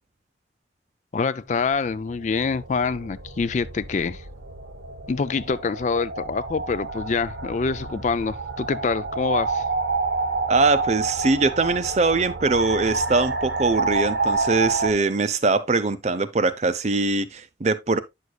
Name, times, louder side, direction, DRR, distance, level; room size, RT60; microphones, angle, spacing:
voice 1, 1.1-4.2 5.1-9.6, left 4 dB, 40° left, 0.3 m, -25 dB
sound 1, 1.7-14.9, right 3 dB, 80° right, 1.2 m, -29 dB
voice 2, 10.5-18.0, right 3 dB, 35° right, 0.6 m, -22 dB
9.4 x 6.4 x 2.3 m
head